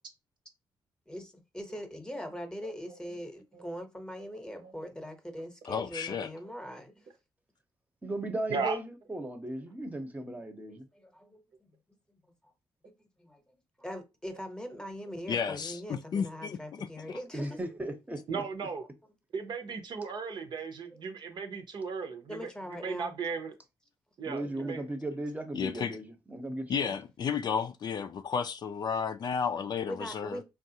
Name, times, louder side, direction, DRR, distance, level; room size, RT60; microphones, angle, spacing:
voice 1, 1.1-6.9 10.7-11.4 11.9-12.2 12.8-13.4 13.8-17.5 22.3-23.1 24.4-24.7 26.8-26.9 29.8-30.4, equal, 10° left, 0.9 m, -42 dB
voice 2, 5.7-6.3 15.3-17.2 25.5-26.0 26.7-30.4, left 6 dB, 55° left, 0.4 m, -33 dB
voice 3, 8.0-10.8 17.3-18.5 24.2-26.8, right 1 dB, 20° right, 0.8 m, -36 dB
voice 4, 18.3-18.8 19.3-22.4 22.8-23.5 24.2-24.8, right 5 dB, 60° right, 0.7 m, -36 dB
3.5 x 2.4 x 2.8 m
cardioid pair, 75°, 9 cm